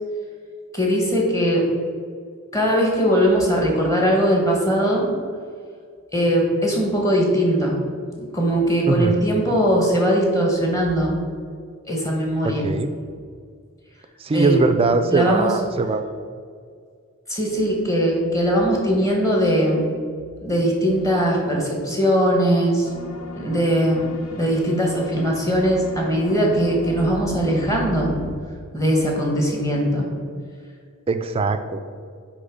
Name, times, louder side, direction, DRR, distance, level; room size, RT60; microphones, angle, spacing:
voice 1, 0.7-1.7 2.5-5.2 6.1-7.7 8.2-11.1 11.9-12.7 14.3-14.6 15.1-15.5 17.3-19.9 20.4-22.9 23.4-28.1 28.7-30.1, equal, 15° left, -1 dB, 1.2 m, -20 dB
voice 2, 12.4-12.9 14.2-16.0 31.1-31.8, right 3 dB, 25° right, 9 dB, 0.3 m, -21 dB
sound 1, 22.8-28.4, left 2 dB, 70° left, 0.8 m, -37 dB
8.0 x 3.1 x 5.1 m, 2.1 s
head